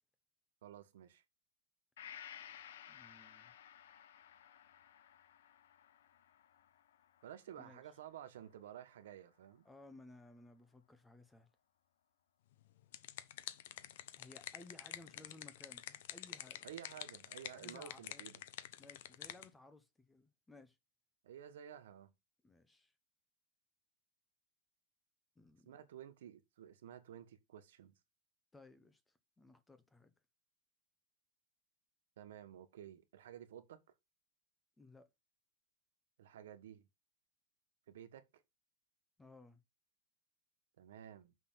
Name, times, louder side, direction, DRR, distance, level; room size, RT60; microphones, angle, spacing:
voice 1, 0.6-1.2 7.2-9.7 16.6-18.4 21.2-22.1 25.6-27.9 32.2-33.8 36.2-36.9 37.9-38.4 40.8-41.4, right 10 dB, 85° right, 1.4 m, -53 dB
Gong, 2.0-9.6 10.0-10.1, left 9 dB, 85° left, 1.0 m, -57 dB
voice 2, 2.9-3.5 7.6-7.8 9.6-11.5 14.2-16.6 17.5-18.2 18.8-20.8 22.4-22.9 25.4-25.8 28.5-30.1 34.8-35.1 39.2-39.6, left 2 dB, 5° left, 0.8 m, -59 dB
sound 1, 12.6-19.5, left 12 dB, 60° left, 0.8 m, -49 dB
5.9 x 5.7 x 5.8 m
supercardioid pair, 170°, 0 cm